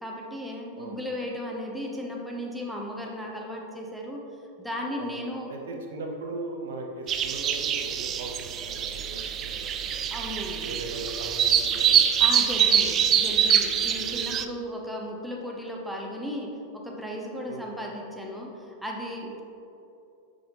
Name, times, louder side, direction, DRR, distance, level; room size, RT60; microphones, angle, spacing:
voice 1, 0.0-4.2 4.6-5.8 10.1-10.7 12.2-19.4, equal, ahead, -1 dB, 0.8 m, -35 dB
voice 2, 5.5-10.0 10.6-13.0 13.9-14.1 17.5-17.7, right 2 dB, 60° right, 1 dB, 0.8 m, -39 dB
sound 1, 7.1-14.4, right 9 dB, 30° right, 0.3 m, -24 dB
6.5 x 6.2 x 3.1 m, 2.8 s
figure-of-eight pair, 90°, 0 cm